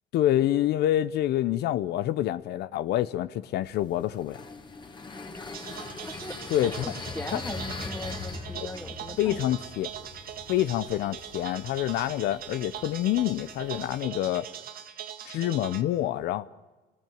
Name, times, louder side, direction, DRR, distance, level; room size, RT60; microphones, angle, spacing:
voice 1, 0.1-4.4 6.5-6.9 7.3-7.4 8.6-8.7 9.2-9.9 10.5-14.5 15.2-16.5, left 13 dB, 75° left, 0.8 m, -27 dB
sound 1, 3.6-14.1, left 4 dB, 25° left, 2.3 m, -42 dB
voice 2, 5.2-5.5 6.0-6.4 6.6-9.4, left 2 dB, 10° left, 2.2 m, -39 dB
sound 2, 5.5-15.8, right 10 dB, 60° right, 1.9 m, -41 dB
29.5 x 19.5 x 9.4 m
cardioid pair, 110°, 17 cm